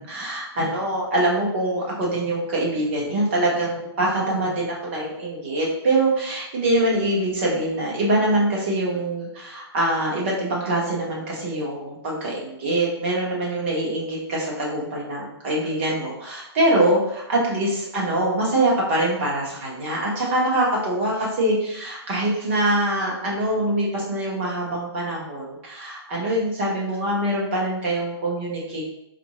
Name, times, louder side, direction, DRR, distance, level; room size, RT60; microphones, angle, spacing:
voice 1, 0.0-28.8, right 1 dB, 25° right, -4 dB, 1.0 m, -24 dB
4.9 x 2.6 x 3.0 m, 0.83 s
hypercardioid pair, 170°, 14 cm